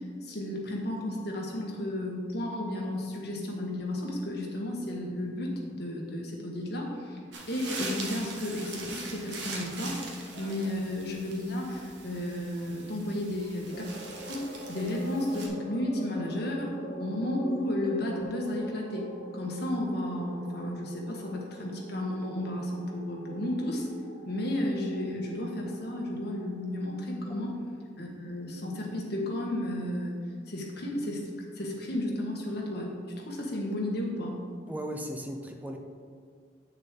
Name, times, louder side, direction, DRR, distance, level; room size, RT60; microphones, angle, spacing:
voice 1, 0.2-7.2 7.5-13.9 14.3-23.9 24.2-27.6 28.0-30.2 30.5-33.0 33.2-34.4, left 1 dB, 60° left, -1 dB, 1.6 m, -33 dB
sound 1, 7.3-15.5, right 3 dB, 70° right, 1.4 m, -42 dB
sound 2, 13.7-28.3, right 1 dB, 45° left, 1.5 m, -45 dB
voice 2, 34.7-35.8, equal, 10° right, 3 dB, 0.5 m, -36 dB
8.7 x 6.5 x 3.8 m, 2.1 s
head